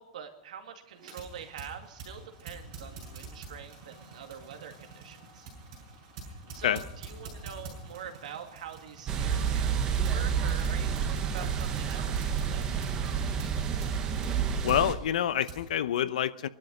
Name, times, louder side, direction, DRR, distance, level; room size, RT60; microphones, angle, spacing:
voice 1, 0.0-5.5 6.2-13.3, right 8 dB, 80° right, 5 dB, 2.3 m, -45 dB
sound 1, 0.9-15.7, right 3 dB, 35° right, 6.4 m, -47 dB
sound 2, 9.1-14.9, right 7 dB, 20° right, 1.1 m, -29 dB
voice 2, 14.6-16.5, left 10 dB, 75° left, 15 dB, 0.7 m, -27 dB
21.0 x 12.0 x 5.4 m, 0.85 s
supercardioid pair, 180°, 4 cm